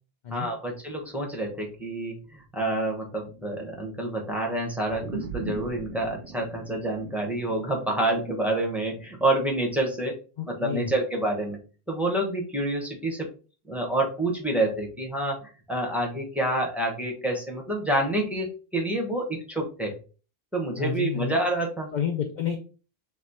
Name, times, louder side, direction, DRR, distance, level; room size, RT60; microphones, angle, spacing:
voice 1, 0.3-10.2 10.5-11.6 11.9-13.3 13.7-19.9 20.5-21.9, right 1 dB, ahead, -1 dB, 1.1 m, -28 dB
sound 1, 4.9-9.6, right 5 dB, 60° right, 0.6 m, -39 dB
voice 2, 10.4-10.9 20.8-21.4 21.9-22.6, left 7 dB, 55° left, 5 dB, 0.6 m, -30 dB
3.4 x 3.1 x 4.0 m, 0.36 s
omnidirectional pair, 1.1 m